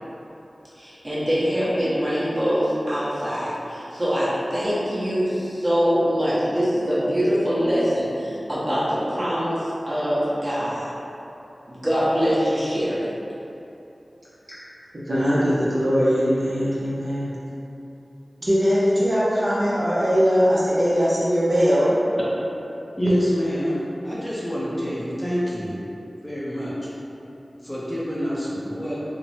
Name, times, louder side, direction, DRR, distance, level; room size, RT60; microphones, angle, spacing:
voice 1, 0.8-10.9 11.7-13.1, equal, 25° right, -11 dB, 1.0 m, -23 dB
voice 2, 15.1-17.3 18.4-22.0, equal, 55° right, -10 dB, 0.6 m, -20 dB
voice 3, 23.0-25.8 26.2-26.7 27.6-29.0, equal, 15° left, -8 dB, 0.6 m, -26 dB
3.0 x 2.1 x 2.7 m, 2.9 s
wide cardioid pair, 55°, 0 cm